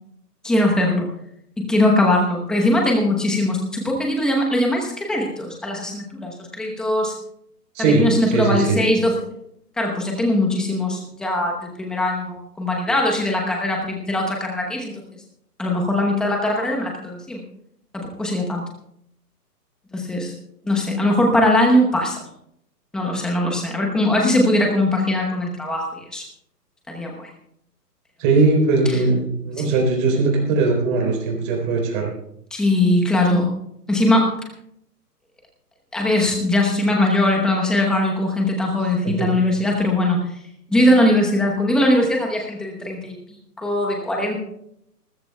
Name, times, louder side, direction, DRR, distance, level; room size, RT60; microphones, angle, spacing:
voice 1, 0.4-1.1 1.6-7.1 7.8-9.1 9.8-15.0 15.6-17.4 17.9-18.7 19.9-20.3 20.6-22.2 22.9-26.2 26.9-27.3 28.9-29.0 29.6-29.7 32.5-33.6 33.9-34.3 35.9-40.3 40.7-43.1 43.6-44.4, left 1 dB, ahead, 0 dB, 0.9 m, -20 dB
voice 2, 7.7-8.8 28.2-32.1 39.0-39.4, right 3 dB, 30° right, 0 dB, 3.8 m, -20 dB
28.0 x 14.0 x 2.3 m, 0.74 s
hypercardioid pair, 145°, 50 cm